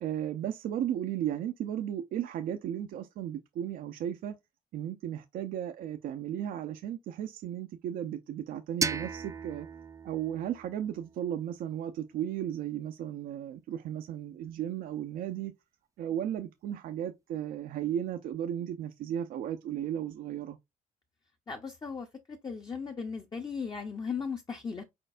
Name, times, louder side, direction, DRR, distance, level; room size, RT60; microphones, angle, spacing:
voice 1, 0.0-4.3 4.7-9.7 10.0-15.5 16.0-20.6, right 10 dB, 70° right, 0.5 m, -35 dB
sound 1, 8.8-11.6, right 4 dB, 20° right, 0.5 m, -37 dB
voice 2, 21.5-24.8, left 5 dB, 25° left, 0.8 m, -37 dB
4.5 x 4.3 x 2.5 m
cardioid pair, 100°, 15 cm